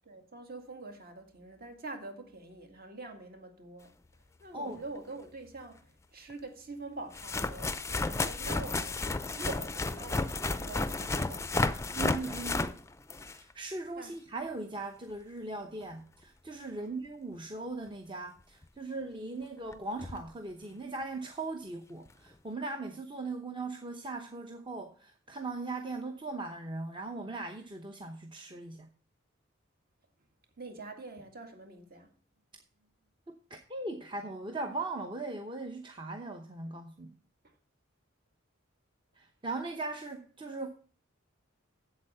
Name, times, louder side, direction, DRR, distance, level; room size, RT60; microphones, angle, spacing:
voice 1, 0.0-3.9 4.4-9.1 9.4-12.0 14.0-14.2 16.6-16.9 30.6-32.1 37.4-37.5, right 2 dB, 45° right, 2.0 m, -45 dB
sound 1, 5.0-5.1 6.3-6.4 7.1-13.5 18.6-18.7 19.7-19.8 20.0-20.2 22.1-22.2, left 3 dB, 15° left, 0.5 m, -32 dB
voice 2, 11.9-12.7 13.3-28.9 33.3-37.1 39.1-40.7, right 2 dB, 25° right, 0.9 m, -39 dB
8.4 x 7.8 x 5.6 m
head